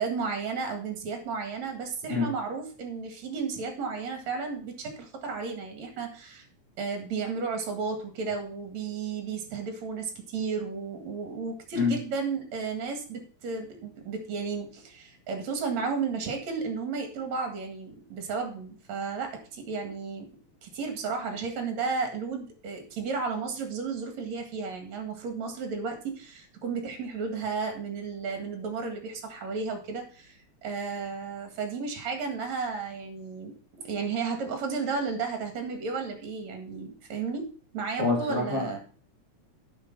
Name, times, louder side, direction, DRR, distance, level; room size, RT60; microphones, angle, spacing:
voice 1, 0.0-6.5 6.8-20.3 20.6-33.5 33.8-37.5 37.7-38.8, right 5 dB, 65° right, 5 dB, 3.2 m, -33 dB
voice 2, 38.0-38.8, left 4 dB, 25° left, -3 dB, 3.5 m, -26 dB
8.8 x 6.5 x 5.8 m, 0.41 s
omnidirectional pair, 3.4 m